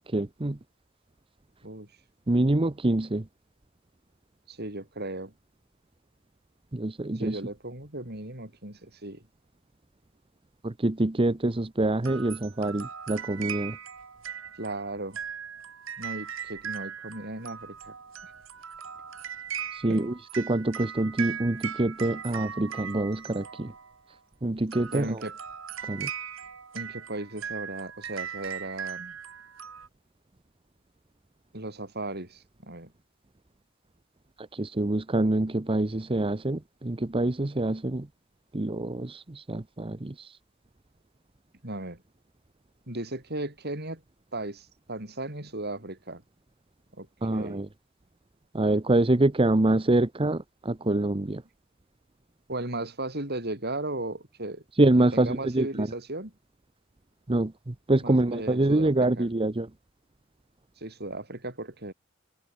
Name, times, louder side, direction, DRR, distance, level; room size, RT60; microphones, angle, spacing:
voice 1, 0.1-0.6 2.3-3.2 6.7-7.4 10.6-13.8 19.7-23.7 24.4-25.2 25.9-26.1 34.5-38.1 38.5-40.3 47.2-47.7 48.5-51.4 54.8-55.9 57.3-59.7, right 2 dB, 25° right, 0.8 m, -26 dB
voice 2, 4.5-5.3 7.2-9.2 14.6-15.2 16.0-17.9 19.9-20.1 24.9-25.4 26.7-29.2 31.5-32.9 41.6-42.0 42.9-44.0 44.3-46.2 46.9-47.6 52.5-54.6 55.1-56.3 58.0-59.3 60.8-61.9, right 2 dB, 50° right, 7.0 m, -36 dB
sound 1, 12.0-24.0 24.6-29.9, right 8 dB, 65° right, 1.9 m, -39 dB
head